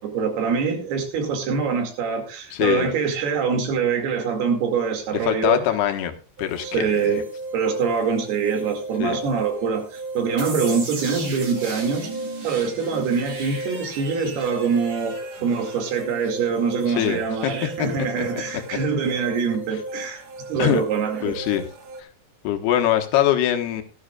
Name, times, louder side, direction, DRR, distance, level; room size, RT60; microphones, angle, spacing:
voice 1, 0.0-5.9 6.6-7.2 7.5-12.1 12.4-20.2 20.5-21.4, right 5 dB, 70° right, 4 dB, 4.3 m, -24 dB
voice 2, 2.5-2.9 5.1-7.2 9.0-9.2 16.9-17.5 17.8-17.9 18.2-18.3 20.6-20.8 21.2-21.6 22.0-22.1 22.4-23.8, left 11 dB, 80° left, 5 dB, 3.3 m, -23 dB
sound 1, 6.4-22.0, right 1 dB, 55° right, 2.0 m, -36 dB
sound 2, 10.4-17.2, right 3 dB, 35° right, 2.6 m, -37 dB
17.0 x 12.5 x 2.4 m, 0.34 s
omnidirectional pair, 4.7 m